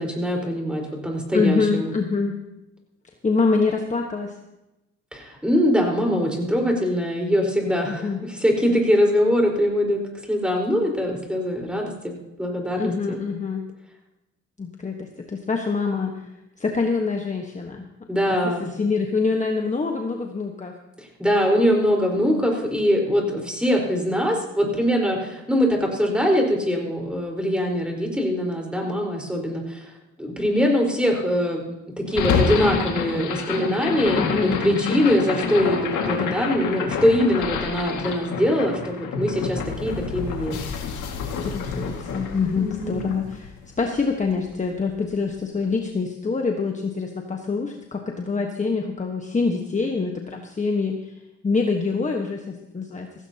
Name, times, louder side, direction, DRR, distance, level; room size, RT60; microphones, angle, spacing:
voice 1, 0.0-1.9 5.1-10.0 10.3-12.1 12.4-13.3 18.1-18.7 21.0-29.9 30.2-31.7 32.0-40.6 42.5-43.1, equal, 5° right, 0 dB, 4.5 m, -22 dB
voice 2, 1.3-2.3 3.2-4.3 7.9-8.2 12.8-13.6 14.6-16.2 16.6-17.8 18.4-18.5 18.8-20.7 34.1-35.0 41.4-43.5 43.8-51.0 51.4-53.1, left 4 dB, 25° left, 2 dB, 1.4 m, -25 dB
sound 1, 32.1-44.3, left 6 dB, 80° left, 2.1 m, -28 dB
16.5 x 16.0 x 2.9 m, 0.93 s
cardioid pair, 90°, 30 cm